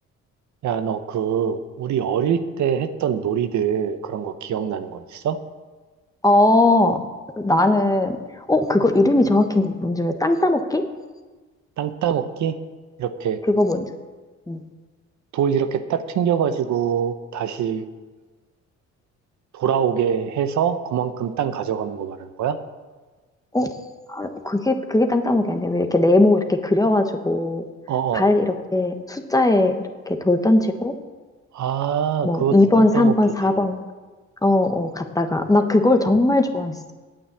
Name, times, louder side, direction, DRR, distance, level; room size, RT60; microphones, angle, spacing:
voice 1, 0.6-5.4 11.8-12.6 13.0-13.4 15.3-17.8 19.5-22.6 27.9-28.3 31.5-33.1 33.5-33.6, right 8 dB, 70° right, 10 dB, 0.9 m, -24 dB
voice 2, 6.2-7.0 7.4-8.2 8.5-10.8 13.5-13.8 14.5-14.6 23.5-23.7 24.1-27.6 28.1-30.9 32.2-33.8 34.4-36.9, left 2 dB, 10° left, 6 dB, 1.2 m, -19 dB
9.4 x 8.9 x 8.5 m, 1.3 s
cardioid pair, 90°, 30 cm